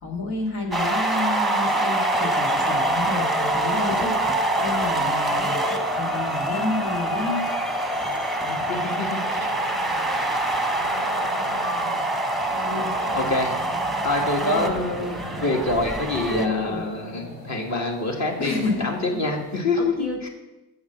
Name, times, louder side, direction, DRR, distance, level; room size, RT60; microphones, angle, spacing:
voice 1, 0.0-5.6 5.9-7.5 12.5-12.9 14.4-14.7 16.3-16.8 18.4-19.3 19.8-20.3, left 3 dB, 80° left, 1 dB, 1.9 m, -30 dB
sound 1, 0.7-16.5, right 1 dB, ahead, 0.9 m, -25 dB
sound 2, 7.2-19.6, left 1 dB, 65° left, 3.8 m, -40 dB
voice 2, 8.4-9.5 13.1-13.6 14.0-20.3, left 2 dB, 45° left, 1 dB, 2.0 m, -26 dB
7.1 x 6.2 x 6.8 m, 1.0 s
cardioid pair, 75°, 39 cm